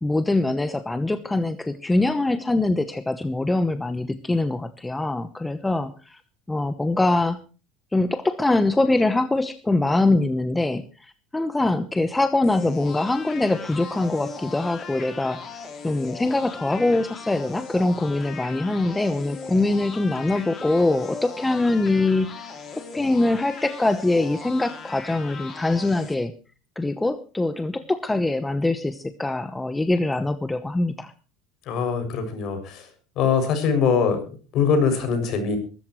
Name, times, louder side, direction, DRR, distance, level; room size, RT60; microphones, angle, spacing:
voice 1, 0.0-6.2 6.5-7.4 7.9-15.4 15.8-22.3 22.8-26.3 26.8-31.1, left 2 dB, 10° left, 11 dB, 1.0 m, -23 dB
sound 1, 12.4-26.1, left 5 dB, 30° left, 3.8 m, -39 dB
voice 2, 31.7-32.9 33.1-35.6, left 6 dB, 50° left, 7 dB, 6.8 m, -22 dB
23.0 x 13.5 x 3.2 m, 0.35 s
cardioid pair, 145°, 0 cm